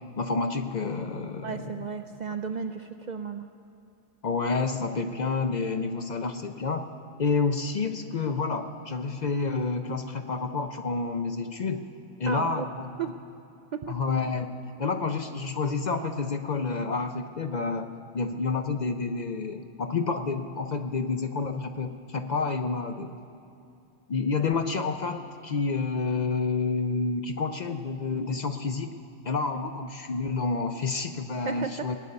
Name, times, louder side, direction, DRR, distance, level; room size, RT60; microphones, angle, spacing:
voice 1, 0.2-1.8 4.2-6.9 7.2-11.8 12.2-13.1 13.9-23.1 24.1-28.9 29.2-32.0, left 4 dB, 50° left, 7 dB, 0.6 m, -29 dB
voice 2, 1.4-3.5 12.3-12.7 13.0-13.1 13.7-13.9 29.5-29.7 31.5-31.9, right 6 dB, 55° right, 7 dB, 0.5 m, -34 dB
18.0 x 6.7 x 9.7 m, 2.6 s
omnidirectional pair, 1.1 m